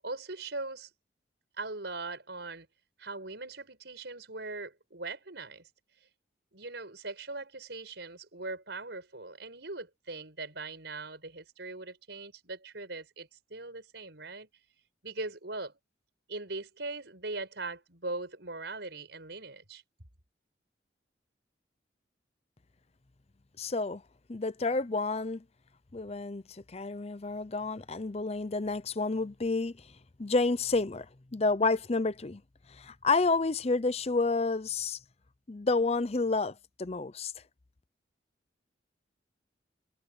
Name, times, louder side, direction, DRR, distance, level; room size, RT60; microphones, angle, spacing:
voice 1, 0.0-0.9 1.6-2.7 3.0-5.7 6.5-14.5 15.0-15.7 16.3-19.8, right 3 dB, 70° right, 5.7 m, -40 dB
voice 2, 23.6-24.0 24.3-25.4 25.9-26.4 26.7-29.8 30.2-31.1 31.3-32.4 32.7-35.0 35.5-37.3, left 3 dB, 35° left, 0.7 m, -29 dB
head